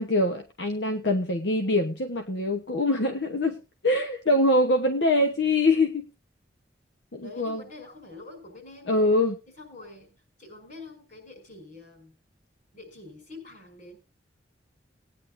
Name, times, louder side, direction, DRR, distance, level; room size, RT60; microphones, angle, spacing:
voice 1, 0.0-3.6 3.8-6.1 7.1-7.6 8.9-9.4, left 2 dB, 75° left, 6 dB, 1.2 m, -24 dB
voice 2, 7.2-9.1 9.6-12.1 12.7-14.0, left 3 dB, 45° left, 3 dB, 5.6 m, -46 dB
19.0 x 9.9 x 2.7 m, 0.29 s
head